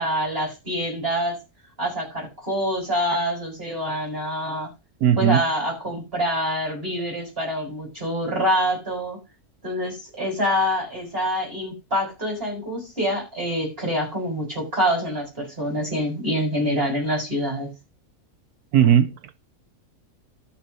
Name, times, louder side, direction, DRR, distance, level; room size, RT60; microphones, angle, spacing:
voice 1, 0.0-1.4 1.8-4.7 5.2-9.2 9.6-17.7, equal, 40° right, 7.6 m, -26 dB
voice 2, 5.0-5.4 18.7-19.3, right 9 dB, 85° right, 1.3 m, -17 dB
12.5 x 7.2 x 5.5 m
omnidirectional pair, 1.6 m